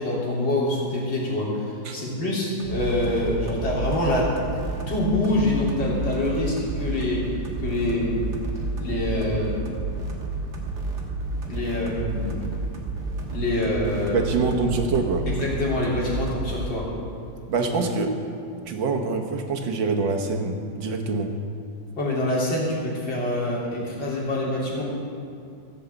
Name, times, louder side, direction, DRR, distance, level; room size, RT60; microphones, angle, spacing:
voice 1, 0.0-4.3 4.9-7.2 7.6-8.3 8.8-9.5 11.5-12.4 13.3-14.2 15.3-16.8 17.6-17.7 22.0-24.8, left 1 dB, 80° left, -6 dB, 3.9 m, -25 dB
sound 1, 2.6-16.7, right 2 dB, 60° right, 2.1 m, -31 dB
voice 2, 14.1-15.3 17.5-18.1 18.7-21.3, right 4 dB, 75° right, 3 dB, 1.9 m, -25 dB
15.0 x 7.1 x 7.8 m, 2.4 s
omnidirectional pair, 2.1 m